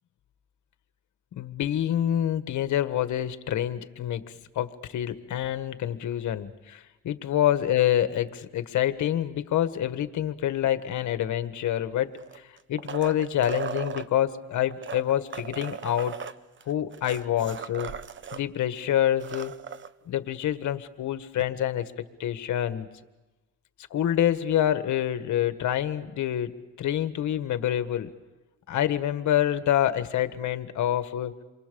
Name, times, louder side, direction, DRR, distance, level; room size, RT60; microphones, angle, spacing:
voice 1, 1.4-12.2 12.7-16.2 16.6-17.9 18.3-19.6 20.1-21.8 22.2-22.9 23.9-28.1 28.7-31.4, left 11 dB, 75° left, 10 dB, 1.6 m, -27 dB
sound 1, 12.1-14.1 14.7-18.4 18.8-18.9 19.1-19.9 21.4-21.5, right 7 dB, 40° right, 1.0 m, -37 dB
28.5 x 24.0 x 7.0 m, 1.1 s
cardioid pair, 90°, 30 cm